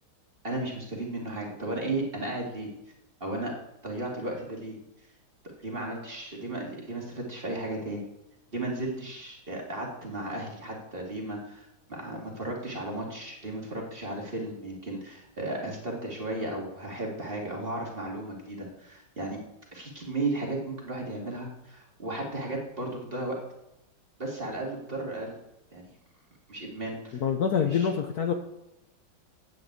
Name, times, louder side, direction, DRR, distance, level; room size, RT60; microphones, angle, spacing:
voice 1, 0.4-2.7 3.2-3.5 3.8-4.7 5.6-8.1 8.5-19.4 19.7-23.4 24.2-25.3 25.7-25.8 26.5-27.2 27.6-27.9, right 2 dB, 30° right, -1 dB, 2.5 m, -34 dB
voice 2, 27.2-28.3, left 7 dB, 60° left, 5 dB, 1.2 m, -25 dB
9.1 x 7.7 x 8.1 m, 0.89 s
omnidirectional pair, 2.0 m